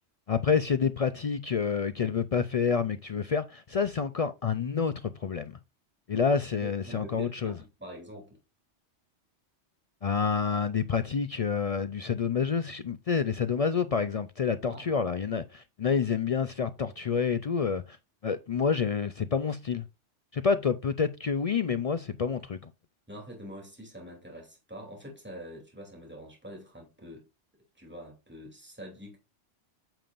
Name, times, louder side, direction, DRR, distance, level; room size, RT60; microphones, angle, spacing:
voice 1, 0.3-5.6 6.1-7.6 10.0-18.0 18.2-19.8 20.3-22.6, left 6 dB, 65° left, 0.3 m, -28 dB
voice 2, 6.6-8.4 14.7-14.9 23.1-27.3 27.7-29.2, equal, 10° right, 2.8 m, -45 dB
9.0 x 6.9 x 2.5 m
omnidirectional pair, 1.2 m